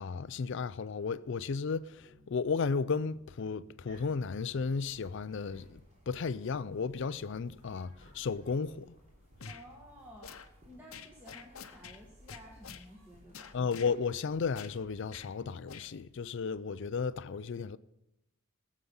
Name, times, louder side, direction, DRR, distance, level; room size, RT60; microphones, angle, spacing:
voice 1, 0.0-5.8 6.1-8.9 13.5-17.8, left 5 dB, 60° left, 0.4 m, -34 dB
sound 1, 1.9-8.2, left 2 dB, 65° right, 1.5 m, -65 dB
sound 2, 3.9-15.3, equal, 35° right, 3.2 m, -60 dB
sound 3, 9.4-9.6 10.2-10.5 10.9-12.0 12.3-12.9 13.3-13.9 14.5-14.8 15.1-15.3 15.7-15.9, left 6 dB, 85° left, 0.9 m, -47 dB
voice 2, 9.5-13.5, equal, 10° right, 1.6 m, -53 dB
19.0 x 7.4 x 5.5 m
head